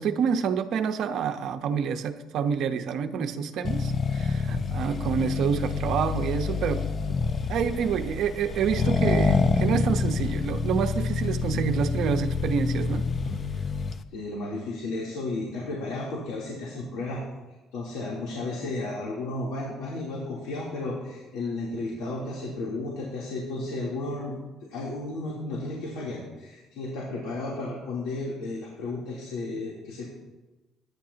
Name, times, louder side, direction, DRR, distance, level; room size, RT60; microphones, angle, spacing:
voice 1, 0.0-6.9 7.5-13.1, right 7 dB, 60° right, 0.9 m, -28 dB
Accelerating revving vroom, 3.6-14.0, left 5 dB, 35° left, 0.6 m, -27 dB
voice 2, 13.1-13.5 14.1-17.2 17.7-24.3 24.6-30.1, left 2 dB, 80° left, 3.3 m, -33 dB
22.0 x 10.5 x 2.9 m
cardioid pair, 125°, 0 cm